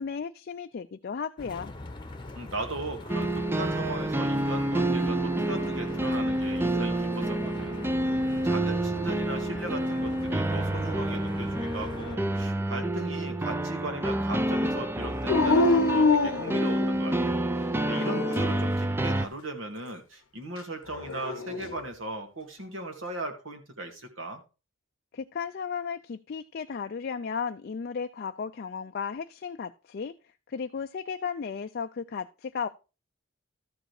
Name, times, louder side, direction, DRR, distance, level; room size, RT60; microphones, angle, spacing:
voice 1, 0.0-1.7 25.1-30.1 30.5-32.7, left 6 dB, 50° left, 0.4 m, -34 dB
sound 1, 1.4-12.2, left 2 dB, 25° left, 1.0 m, -41 dB
voice 2, 2.3-24.4, right 2 dB, 70° right, 2.1 m, -38 dB
sound 2, 3.1-19.3, right 1 dB, 10° right, 0.4 m, -28 dB
Dog, 15.3-17.2 17.8-18.6 20.9-21.8, left 3 dB, 90° left, 0.7 m, -25 dB
13.0 x 5.0 x 4.8 m
head